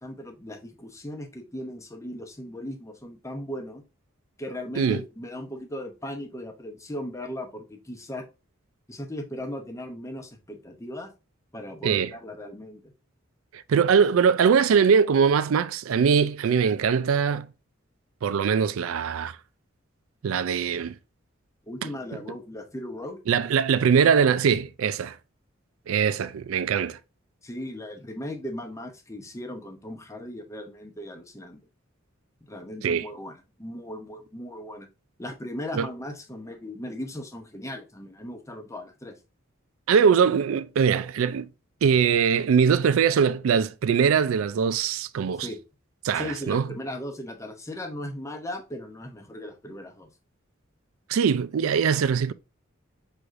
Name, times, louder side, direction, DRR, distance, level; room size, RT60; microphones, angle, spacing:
voice 1, 0.0-3.8 4.4-8.2 8.9-11.1 11.5-12.9 21.7-23.2 27.4-31.6 32.5-34.9 35.2-39.2 45.4-45.6 46.1-50.1, left 1 dB, 15° left, 0.8 m, -37 dB
voice 2, 13.5-17.5 18.2-19.3 20.2-21.0 23.3-25.2 25.9-27.0 32.8-33.1 35.7-35.9 39.9-41.5 41.8-45.5 46.0-46.7 51.1-52.3, right 6 dB, 80° right, 0.4 m, -22 dB
6.1 x 3.3 x 2.5 m
head